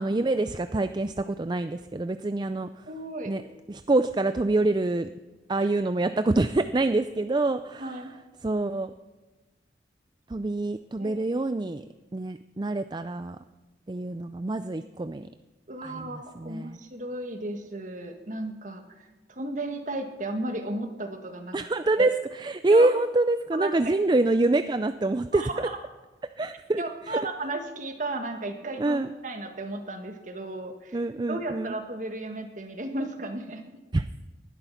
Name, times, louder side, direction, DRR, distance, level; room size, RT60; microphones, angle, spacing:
voice 1, 0.0-2.9 3.2-3.4 3.7-5.1 5.5-8.0 8.4-8.9 10.3-11.8 12.1-13.4 13.9-15.3 15.8-16.8 21.5-25.7 26.4-27.2 28.8-29.1 30.9-31.7 33.9-34.1, right 2 dB, 25° right, 11 dB, 0.4 m, -26 dB
voice 2, 2.9-3.3 5.6-5.7 7.8-8.1 11.0-11.2 15.7-21.6 22.0-22.1 22.7-22.9 23.5-23.7 25.3-25.8 26.8-31.0 31.3-33.6, right 2 dB, 45° right, 6 dB, 1.9 m, -34 dB
19.0 x 12.0 x 5.8 m, 1.2 s
head